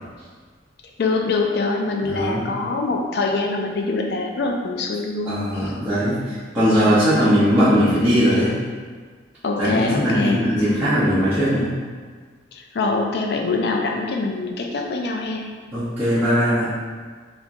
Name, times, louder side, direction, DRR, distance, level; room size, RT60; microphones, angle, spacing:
voice 1, 1.0-5.7 9.4-10.4 12.5-15.5, left 3 dB, 55° left, 2 dB, 0.4 m, -24 dB
voice 2, 2.0-2.4 5.3-8.5 9.6-11.7 15.7-16.7, equal, 10° right, -15 dB, 0.7 m, -19 dB
3.6 x 2.9 x 2.5 m, 1.5 s
head